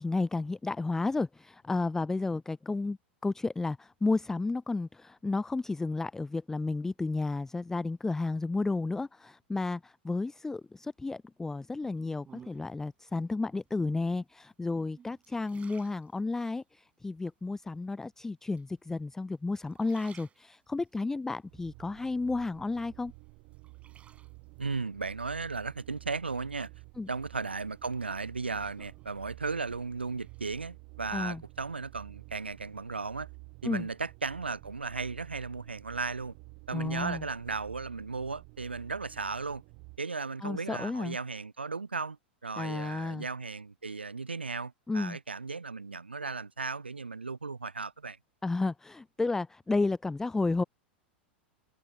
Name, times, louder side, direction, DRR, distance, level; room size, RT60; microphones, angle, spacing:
voice 1, 0.0-3.0 3.2-23.1 27.0-27.1 31.1-31.4 33.6-33.8 36.7-37.2 40.4-41.2 42.6-43.3 44.9-45.2 48.4-50.6, left 3 dB, 10° left, 0.4 m, -32 dB
sound 1, 11.8-12.9 13.7-14.2 14.7-16.7 17.2-17.8 18.6-19.2 19.6-20.9 21.4-22.6 23.0-24.6 26.0-26.6 27.1-29.7 29.9-30.4, right 7 dB, 20° right, 4.9 m, -58 dB
sound 2, 21.5-40.0, right 33 dB, 45° right, 1.1 m, -51 dB
voice 2, 24.6-26.7 27.1-33.3 33.6-36.3 36.7-39.6 40.0-42.2 42.4-48.2, right 4 dB, 85° right, 0.4 m, -36 dB
figure-of-eight pair, 90°, 6 cm